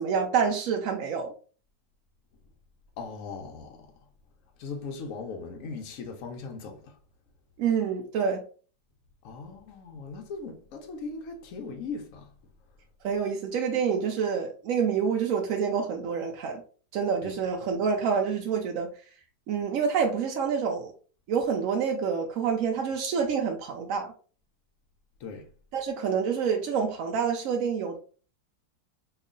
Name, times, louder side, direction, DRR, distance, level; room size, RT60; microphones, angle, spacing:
voice 1, 0.0-1.3 7.6-8.4 13.0-16.6 16.9-18.9 19.5-20.9 21.3-24.1 25.7-28.0, right 6 dB, 80° right, 0.7 m, -27 dB
voice 2, 3.0-4.1 4.6-7.0 9.2-12.3 17.2-17.4 25.2-25.5, left 4 dB, 75° left, 0.7 m, -39 dB
3.0 x 2.4 x 3.7 m
omnidirectional pair, 2.0 m